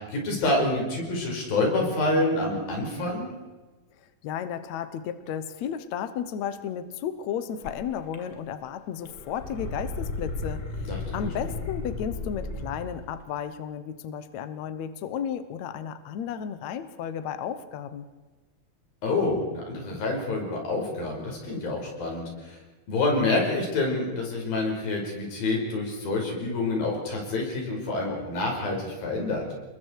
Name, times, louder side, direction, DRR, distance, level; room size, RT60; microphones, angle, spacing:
voice 1, 0.1-3.3 10.9-11.2 19.0-22.6 22.9-29.4, left 2 dB, 80° left, 0 dB, 7.3 m, -27 dB
voice 2, 4.2-18.1, left 8 dB, 65° left, 11 dB, 2.0 m, -33 dB
sound 1, 7.6-7.7 8.1-8.7 9.0-13.0, left 3 dB, 35° left, 1.9 m, -34 dB
29.5 x 22.0 x 4.7 m, 1.2 s
omnidirectional pair, 4.1 m